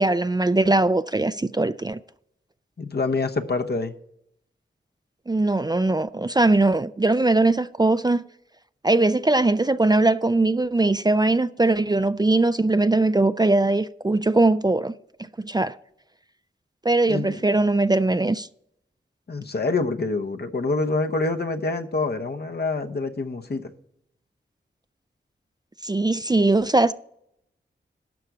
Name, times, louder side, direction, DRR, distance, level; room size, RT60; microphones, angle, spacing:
voice 1, 0.0-2.0 5.3-8.2 8.8-14.9 15.4-15.7 16.8-18.5 25.8-26.9, right 2 dB, 20° right, 0.4 m, -20 dB
voice 2, 2.8-3.9 17.1-17.4 19.3-23.7, left 3 dB, 55° left, 1.0 m, -26 dB
12.0 x 6.8 x 4.9 m
cardioid pair, 45°, 20 cm